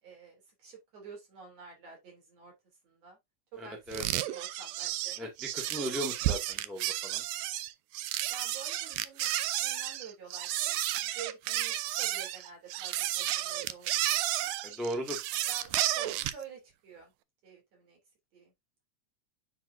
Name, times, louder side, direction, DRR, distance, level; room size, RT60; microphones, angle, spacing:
voice 1, 0.0-2.5 2.8-3.2 3.5-5.3 8.3-9.3 9.6-14.5 15.5-17.1 17.4-18.0 18.3-18.5, right 6 dB, 55° right, 3.9 m, -49 dB
voice 2, 3.6-4.1 5.2-5.3 5.5-7.2 14.6-15.2, equal, ahead, 0.9 m, -37 dB
sound 1, 3.9-16.4, right 14 dB, 85° right, 1.6 m, -32 dB
9.1 x 4.8 x 2.6 m
omnidirectional pair, 3.7 m